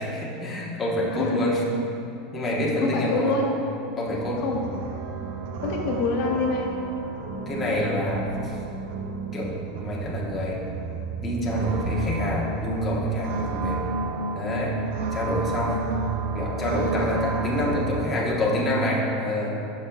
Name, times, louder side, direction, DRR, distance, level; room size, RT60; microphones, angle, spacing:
voice 1, 0.0-1.6 2.3-3.4 4.0-4.4 7.5-8.6 9.3-10.6 11.2-13.8 14.3-14.8 15.1-15.9 16.3-19.6, left 1 dB, 20° left, -5 dB, 1.2 m, -27 dB
voice 2, 2.8-3.5 4.4-4.6 5.6-6.8, left 3 dB, 60° left, 0 dB, 1.1 m, -25 dB
sound 1, 4.1-18.1, right 4 dB, 70° right, 0.5 m, -31 dB
11.0 x 6.2 x 2.4 m, 2.7 s
supercardioid pair, 130°, 0 cm